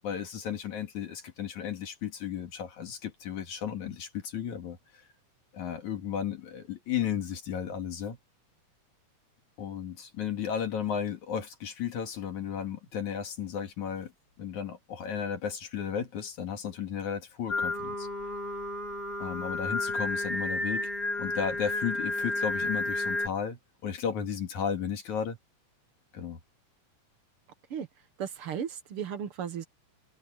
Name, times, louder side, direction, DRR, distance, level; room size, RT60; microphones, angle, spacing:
voice 1, 0.0-5.0 5.5-8.2 9.6-14.1 14.4-18.1 19.2-20.9 21.2-25.4 26.1-26.4, left 8 dB, 70° left, 3.6 m, -34 dB
Singing, 17.5-23.3, left 2 dB, 30° left, 6.2 m, -32 dB
voice 2, 28.2-29.7, right 8 dB, 55° right, 1.9 m, -35 dB
omnidirectional pair, 3.5 m